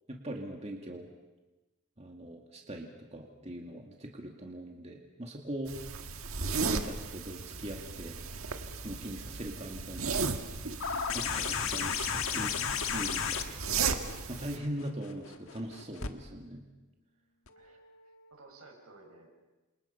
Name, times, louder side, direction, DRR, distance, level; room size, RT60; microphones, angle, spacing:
voice 1, 0.1-1.1 2.0-5.8 6.6-8.2 8.8-10.5 11.1-12.6 12.9-13.5 14.3-16.6, right 1 dB, 30° right, 1 dB, 2.2 m, -41 dB
sound 1, 5.7-14.6, right 5 dB, 75° right, 1.7 m, -36 dB
sound 2, 10.8-16.1 17.5-17.6, left 7 dB, 70° left, 1.6 m, -34 dB
voice 2, 17.5-19.3, right 3 dB, 90° right, 1 dB, 6.7 m, -56 dB
29.0 x 27.0 x 5.6 m, 1.1 s
head